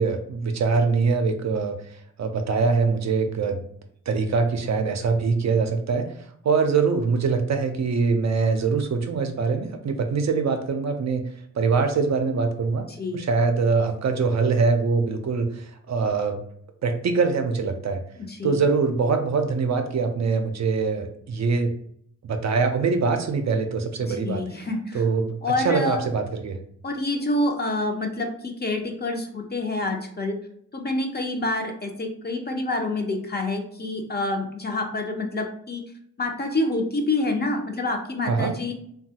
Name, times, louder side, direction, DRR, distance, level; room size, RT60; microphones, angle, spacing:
voice 1, 0.0-1.8 2.2-3.6 4.1-6.1 6.4-11.3 11.5-12.9 13.1-16.4 16.8-18.0 18.4-21.7 22.2-24.4 24.9-26.6 38.3-38.5, right 4 dB, 55° right, 6 dB, 0.5 m, -23 dB
voice 2, 12.9-13.3 18.2-18.6 24.1-25.0 25.4-26.0 26.8-30.4 30.7-35.8 36.2-38.7, left 2 dB, 30° left, 3 dB, 0.6 m, -27 dB
3.0 x 2.3 x 2.8 m, 0.65 s
cardioid pair, 70°, 34 cm